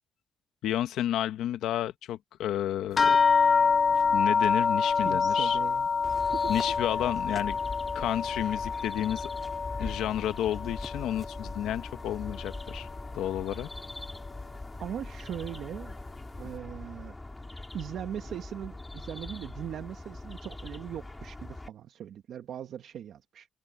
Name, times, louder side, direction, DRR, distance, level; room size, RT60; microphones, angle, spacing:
voice 1, 0.6-3.2 4.1-5.6 6.5-7.6 7.9-9.3 9.8-12.9 13.1-13.7, left 12 dB, 85° left, 1.3 m, -31 dB
sound 1, 3.0-11.8 12.1-13.0 13.7-13.8 14.3-14.4, left 5 dB, 40° left, 0.5 m, -27 dB
voice 2, 5.0-5.9 6.4-6.6 14.8-16.0 16.4-17.1 17.7-23.5, right 10 dB, 70° right, 1.6 m, -39 dB
sound 2, 6.0-21.7, left 2 dB, 15° left, 5.8 m, -42 dB
cardioid pair, 90°, 0 cm